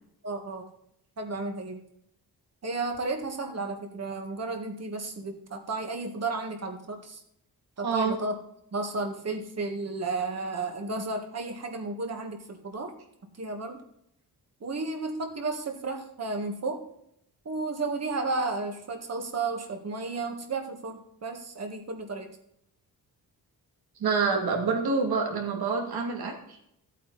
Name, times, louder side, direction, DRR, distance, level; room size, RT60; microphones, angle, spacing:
voice 1, 0.2-0.7 1.2-1.8 2.6-7.2 7.8-8.3 8.7-12.9 13.4-13.8 14.6-16.8 17.5-22.3, right 3 dB, 40° right, 4 dB, 1.8 m, -33 dB
voice 2, 7.8-8.1 24.0-26.3, right 4 dB, 80° right, 1 dB, 2.6 m, -26 dB
14.0 x 8.4 x 4.2 m, 0.75 s
wide cardioid pair, 140°, 37 cm